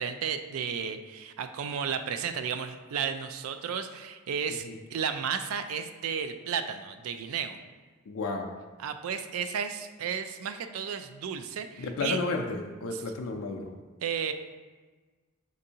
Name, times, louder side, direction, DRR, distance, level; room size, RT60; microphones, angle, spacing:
voice 1, 0.0-7.6 8.8-12.2 14.0-14.3, right 7 dB, 75° right, 9 dB, 0.3 m, -33 dB
voice 2, 8.1-8.5 11.8-13.7, left 3 dB, 70° left, 3 dB, 0.4 m, -32 dB
6.1 x 2.6 x 2.7 m, 1.3 s
head